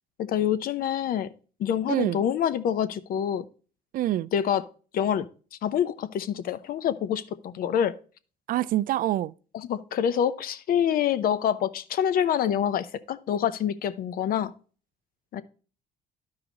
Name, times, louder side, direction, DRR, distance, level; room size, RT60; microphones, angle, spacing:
voice 1, 0.2-1.3 1.6-3.5 4.3-4.6 4.9-5.3 5.6-8.0 9.5-14.5 15.3-15.4, left 9 dB, 60° left, 0.7 m, -26 dB
voice 2, 1.9-2.2 3.9-4.3 8.5-9.3, right 14 dB, 55° right, 0.4 m, -26 dB
12.0 x 4.8 x 3.8 m
cardioid pair, 110°, 17 cm